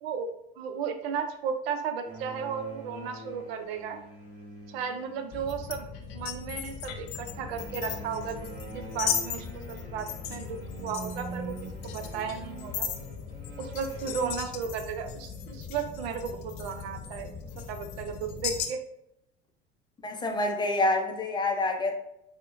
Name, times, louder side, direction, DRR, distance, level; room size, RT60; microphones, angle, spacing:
voice 1, 0.0-4.0 4.7-5.9 6.1-8.4 8.7-11.6 11.8-12.9 13.6-17.3 17.7-18.8, right 6 dB, 65° right, 7 dB, 0.5 m, -34 dB
sound 1, 2.0-5.6 6.9-14.3, right 3 dB, 25° right, 1.2 m, -44 dB
sound 2, 5.3-18.7, left 8 dB, 55° left, 0.6 m, -37 dB
voice 2, 20.0-22.0, left 2 dB, 15° left, 3 dB, 0.5 m, -27 dB
4.3 x 2.1 x 2.5 m, 0.81 s
figure-of-eight pair, 65°, 33 cm